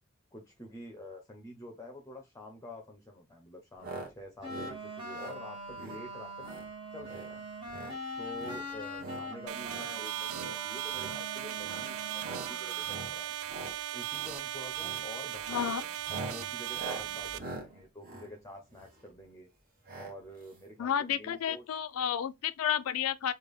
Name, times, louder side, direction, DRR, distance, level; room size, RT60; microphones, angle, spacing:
voice 1, 0.3-6.5 6.9-7.5 8.2-13.4 13.9-19.5 19.9-21.6, left 1 dB, 15° left, 0.5 m, -48 dB
sound 1, 3.8-4.1 4.4-4.7 5.1-5.4 5.7-6.0 6.4-6.7 7.0-7.3 7.6-8.0 8.3-9.2 9.6-9.9 10.3-10.6 10.9-11.2 11.6-11.9 12.2-12.5 12.8-13.1 13.4-13.7 14.1-14.4 14.8-15.0 15.4-19.1 19.9-20.1 20.4-20.5 20.7-20.8, right 2 dB, 40° right, 1.1 m, -43 dB
sound 2, 4.4-13.2, equal, 25° right, 1.2 m, -42 dB
sound 3, 9.5-17.4, right 13 dB, 70° right, 0.3 m, -37 dB
voice 2, 15.5-15.8 20.8-23.3, left 9 dB, 75° left, 0.4 m, -31 dB
3.3 x 2.3 x 3.5 m
head